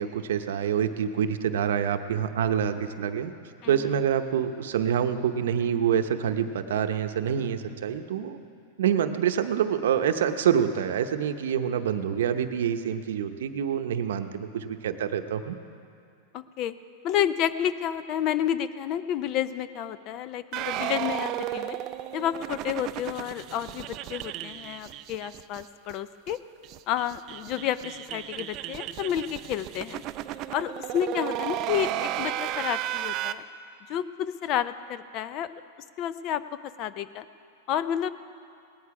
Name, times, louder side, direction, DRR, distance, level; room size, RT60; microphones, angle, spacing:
voice 1, 0.0-3.3 3.7-8.4 8.8-15.6, right 8 dB, 85° right, 8 dB, 0.8 m, -26 dB
voice 2, 3.6-4.0 16.3-16.7 17.0-21.8 22.1-26.4 26.9-30.0 30.5-33.4 33.9-35.5 36.0-37.3 37.7-38.1, left 10 dB, 40° left, 14 dB, 0.5 m, -30 dB
sound 1, 20.5-25.6 25.9-26.0 26.3-26.4 26.6-33.3, right 13 dB, 35° right, 0.4 m, -34 dB
18.0 x 10.5 x 4.8 m, 2.4 s
supercardioid pair, 150°, 0 cm